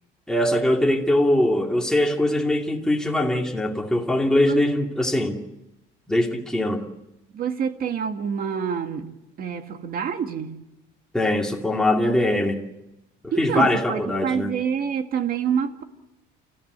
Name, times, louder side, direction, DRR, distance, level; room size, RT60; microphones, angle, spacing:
voice 1, 0.3-5.4 6.1-6.8 11.1-12.6 13.2-14.5, left 1 dB, 5° left, 2.6 m, -22 dB
voice 2, 7.3-9.1 9.4-10.6 13.3-15.8, right 7 dB, 45° right, 2.0 m, -27 dB
29.5 x 15.0 x 8.1 m
cardioid pair, 135°, 21 cm